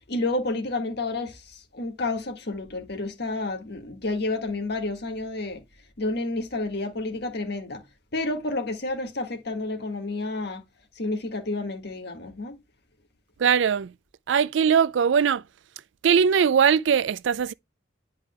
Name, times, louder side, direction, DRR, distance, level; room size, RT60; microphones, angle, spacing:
voice 1, 0.1-5.6 6.0-7.8 8.1-10.6 11.0-12.6, left 2 dB, 60° left, 1.8 m, -30 dB
voice 2, 13.4-13.9 14.3-15.4 16.0-17.5, right 7 dB, 75° right, 0.4 m, -20 dB
10.5 x 4.8 x 2.2 m
head